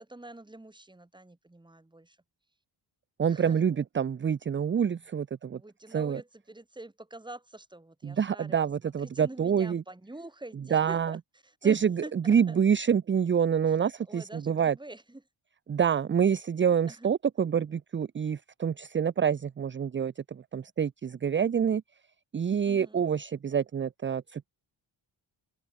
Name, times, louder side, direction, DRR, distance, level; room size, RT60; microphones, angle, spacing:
voice 1, 0.0-2.2 3.2-3.7 5.5-8.6 8.8-11.2 11.4-12.1 12.5-12.6 13.7-13.8 14.1-15.2 16.9-17.1 22.6-23.0, right 2 dB, 10° right, 1.7 m, -46 dB
voice 2, 3.2-5.6 5.9-6.2 8.0-9.8 10.7-11.2 11.6-14.7 15.7-21.8 22.3-24.5, right 7 dB, 25° right, 0.3 m, -27 dB
open air
wide cardioid pair, 130°, 49 cm